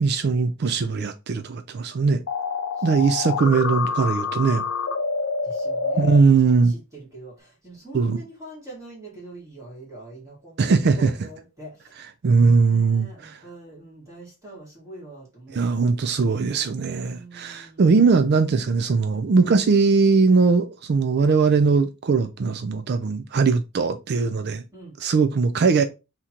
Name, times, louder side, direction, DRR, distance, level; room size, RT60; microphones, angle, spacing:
voice 1, 0.0-2.2 2.8-4.6 6.0-6.7 7.9-8.2 10.6-11.1 12.2-13.3 15.5-24.6 25.0-25.8, right 4 dB, 50° right, 0.4 m, -20 dB
sound 1, 2.3-6.2, left 4 dB, 75° left, 0.6 m, -27 dB
voice 2, 2.8-3.5 5.4-16.0 17.0-18.1 24.7-25.0, right 2 dB, 15° right, 2.1 m, -43 dB
3.7 x 2.9 x 4.3 m
head